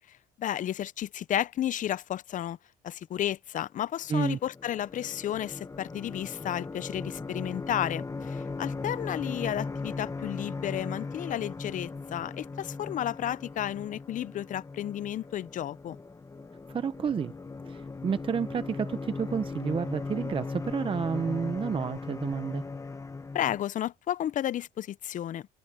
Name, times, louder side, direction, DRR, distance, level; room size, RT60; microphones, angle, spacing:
voice 1, 0.4-2.6 2.8-16.0 23.3-25.5, left 11 dB, 50° left, 0.6 m, -32 dB
voice 2, 4.1-4.4 16.7-17.3 17.7-22.6, right 6 dB, 30° right, 0.7 m, -30 dB
sound 1, 4.3-23.6, left 4 dB, 20° left, 1.2 m, -38 dB
cardioid pair, 110°, 17 cm